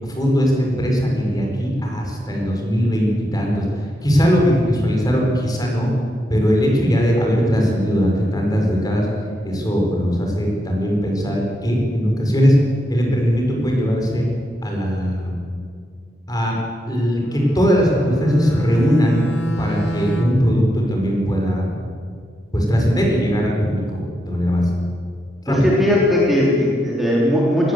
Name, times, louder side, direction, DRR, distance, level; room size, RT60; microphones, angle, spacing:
voice 1, 0.0-5.9 6.3-9.1 9.4-12.6 12.9-14.3 14.6-15.4 16.3-16.6 16.9-19.2 19.6-21.7 22.5-24.7 25.4-25.7, equal, 20° left, 0 dB, 4.8 m, -19 dB
Bowed string instrument, 17.1-20.5, equal, 70° left, 2.7 m, -29 dB
voice 2, 25.5-27.7, left 1 dB, ahead, -5 dB, 3.5 m, -18 dB
19.5 x 16.5 x 8.1 m, 2.2 s
head